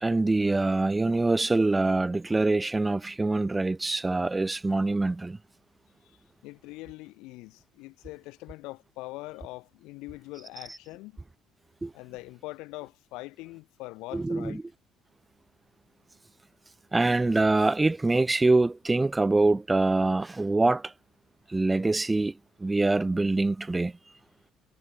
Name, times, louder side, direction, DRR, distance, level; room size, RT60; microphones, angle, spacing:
voice 1, 0.0-5.4 11.8-11.9 14.1-14.6 16.9-20.9 21.5-22.3 22.6-23.9, right 2 dB, 15° right, 0.6 m, -24 dB
voice 2, 6.4-11.2 11.9-14.6, left 22 dB, 85° left, 5.3 m, -42 dB
cardioid pair, 100°, 0 cm